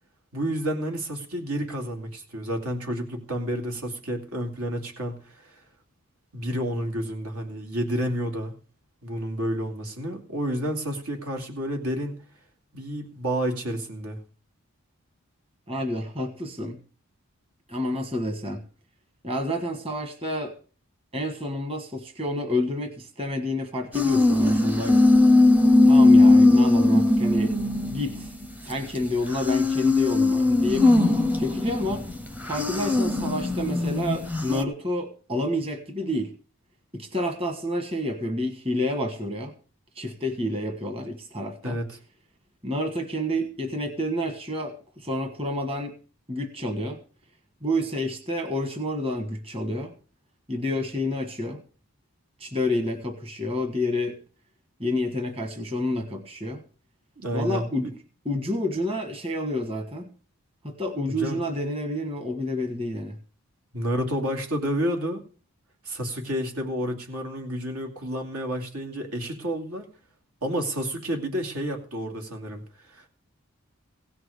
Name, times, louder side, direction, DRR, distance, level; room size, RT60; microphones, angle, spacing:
voice 1, 0.3-5.6 6.3-8.6 9.0-12.2 12.7-14.2 41.6-42.0 57.2-57.7 61.1-61.4 63.7-65.2 65.8-69.9 70.4-73.1, equal, 85° right, 3 dB, 2.7 m, -30 dB
voice 2, 15.7-16.8 17.7-18.6 19.2-20.5 21.1-25.0 25.9-27.5 27.8-28.3 28.6-30.9 31.3-32.0 32.4-36.3 36.9-39.5 39.9-41.8 42.6-45.9 46.3-47.0 47.6-49.9 50.5-51.6 52.4-54.2 54.8-56.6 57.3-57.9 58.2-60.1 60.6-63.2, left 1 dB, 25° right, 5 dB, 1.4 m, -29 dB
sound 1, 23.9-29.0 29.3-34.6, left 2 dB, 5° right, 0.6 m, -19 dB
16.5 x 6.2 x 6.6 m, 0.39 s
head